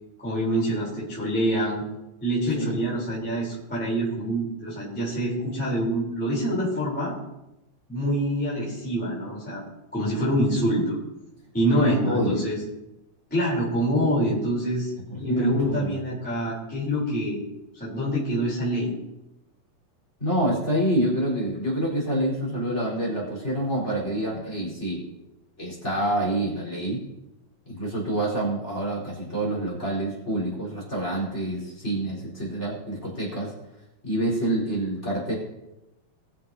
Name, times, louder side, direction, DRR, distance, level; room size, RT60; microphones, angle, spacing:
voice 1, 0.2-1.8 2.2-7.1 7.9-9.6 9.9-10.9 11.5-12.6 13.3-14.9 15.2-17.4 17.7-18.9, equal, 5° left, -7 dB, 3.1 m, -26 dB
voice 2, 11.8-12.5 15.0-16.0 20.2-25.1 25.6-27.0 27.7-33.5 34.0-35.3, right 1 dB, 20° left, -4 dB, 4.2 m, -27 dB
21.5 x 7.2 x 2.8 m, 0.94 s
omnidirectional pair, 4.1 m